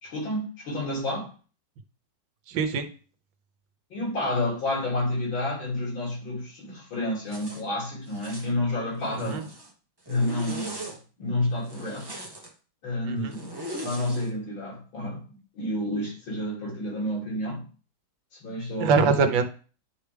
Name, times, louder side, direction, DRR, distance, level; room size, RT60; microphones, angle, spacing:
voice 1, 0.0-1.3 3.9-9.5 10.1-12.1 12.8-13.6 13.8-17.7 18.3-19.3, left 1 dB, 90° left, 3.6 m, -30 dB
voice 2, 2.5-2.9 9.1-9.4 13.0-13.3 18.8-19.5, right 5 dB, 75° right, 1.5 m, -23 dB
Zipper (clothing), 7.3-7.6 8.1-8.5 9.0-9.7 10.0-11.0 11.6-12.5 13.3-14.3, right 1 dB, 15° right, 0.8 m, -39 dB
10.5 x 4.7 x 3.3 m
omnidirectional pair, 2.1 m